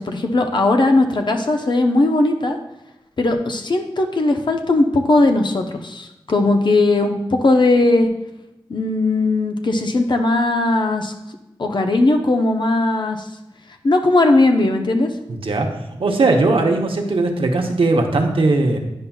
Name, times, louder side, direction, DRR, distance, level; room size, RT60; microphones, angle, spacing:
voice 1, 0.0-2.6 3.2-8.1 8.7-11.1 11.6-13.3 13.8-15.1, left 2 dB, 55° left, 4 dB, 0.7 m, -18 dB
voice 2, 15.3-15.7 16.0-18.8, right 3 dB, 75° right, 3 dB, 0.8 m, -18 dB
9.7 x 5.6 x 2.3 m, 0.94 s
wide cardioid pair, 60°, 9 cm